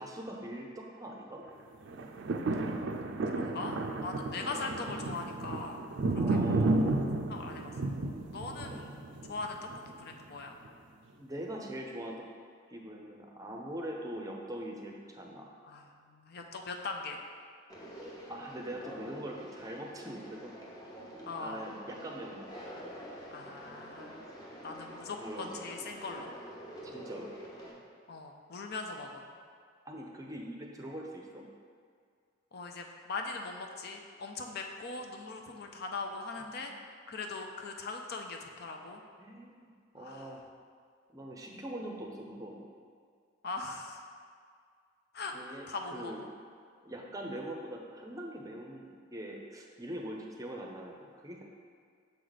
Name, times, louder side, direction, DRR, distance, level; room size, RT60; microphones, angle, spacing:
voice 1, 0.0-1.4 4.3-4.7 6.1-7.1 8.6-8.8 11.2-12.3 12.7-15.5 18.3-20.6 21.4-22.5 25.0-25.6 26.8-27.3 29.9-31.5 39.2-40.4 41.1-42.7 45.3-46.2 46.8-51.4, right 1 dB, 15° right, 0 dB, 0.6 m, -42 dB
sound 1, 1.9-10.1 10.7-10.8, right 2 dB, 60° right, 0.4 m, -32 dB
voice 2, 3.3-6.7 7.3-7.7 8.3-9.0 9.3-9.6 10.0-10.6 15.7-17.2 21.3-21.7 23.3-24.1 24.6-26.3 28.1-29.2 32.5-36.7 37.1-39.0 40.0-40.4 41.5-41.6 43.4-44.1 45.1-45.3 45.7-46.3, left 3 dB, 50° left, 3 dB, 0.5 m, -40 dB
Conversation, 17.7-27.7, equal, 20° left, 1.0 m, -47 dB
6.7 x 4.8 x 4.0 m, 2.1 s
head